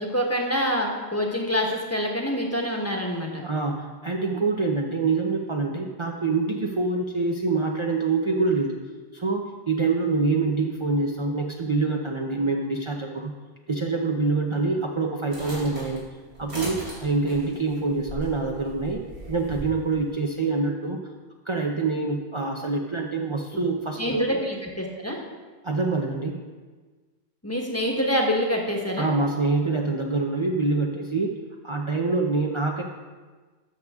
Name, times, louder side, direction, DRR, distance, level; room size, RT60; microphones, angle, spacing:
voice 1, 0.0-3.5 24.0-25.2 27.4-29.1, equal, 15° left, 0 dB, 1.2 m, -26 dB
voice 2, 3.4-8.8 9.1-13.3 13.7-16.0 16.4-19.0 19.3-21.0 21.5-24.3 25.6-26.4 29.0-31.3 31.6-32.8, right 3 dB, 35° right, 0 dB, 0.6 m, -25 dB
sound 1, 15.3-19.7, right 1 dB, 85° right, 3.6 m, -38 dB
13.0 x 6.6 x 3.6 m, 1.4 s
omnidirectional pair, 1.1 m